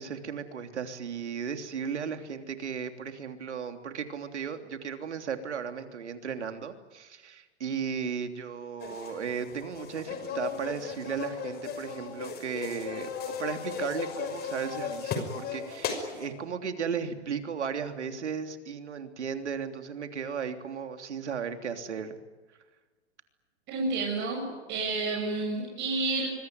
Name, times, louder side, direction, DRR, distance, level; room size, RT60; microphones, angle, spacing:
voice 1, 0.0-22.2, right 6 dB, 80° right, 7 dB, 3.3 m, -35 dB
sound 1, 8.8-16.3, left 6 dB, 30° left, 5.8 m, -36 dB
voice 2, 23.7-24.4 24.7-26.3, right 3 dB, 30° right, -1 dB, 7.2 m, -30 dB
26.0 x 23.0 x 9.4 m, 1.3 s
hypercardioid pair, 125°, 34 cm